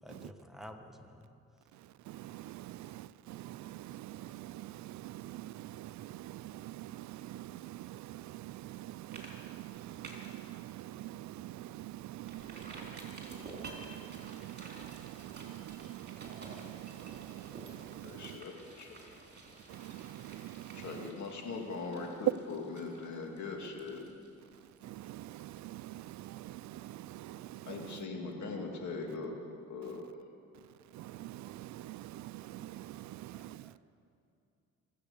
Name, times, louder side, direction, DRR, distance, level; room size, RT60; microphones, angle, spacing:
voice 1, 0.0-1.3 28.1-28.3 33.3-33.8, equal, ahead, 1.3 m, -51 dB
voice 2, 1.7-18.4 19.7-21.1 24.6-28.1 29.8-29.9 30.9-33.7, right 14 dB, 70° right, 0.4 m, -45 dB
sound 1, 9.1-9.3 9.6-10.4 10.8-10.9 11.3-11.4 12.2-25.8 26.1-26.2, right 2 dB, 35° right, 3.6 m, -52 dB
voice 3, 18.0-19.1 20.7-24.1 27.7-29.4 29.7-30.0, left 3 dB, 70° left, 2.5 m, -41 dB
24.5 x 8.3 x 7.0 m
cardioid pair, 90°, 30 cm